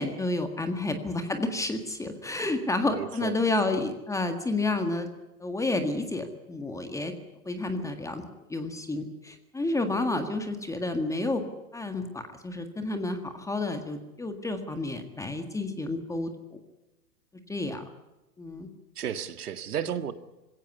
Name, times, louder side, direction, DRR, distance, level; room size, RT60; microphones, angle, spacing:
voice 1, 0.0-5.1 5.4-7.1 7.5-8.2 8.5-11.4 11.7-16.6 17.5-17.8 18.4-18.7, left 2 dB, 5° left, 1.7 m, -30 dB
voice 2, 2.9-3.5 19.0-20.1, right 8 dB, 75° right, 1.9 m, -33 dB
21.0 x 17.0 x 9.7 m
hypercardioid pair, 130°, 46 cm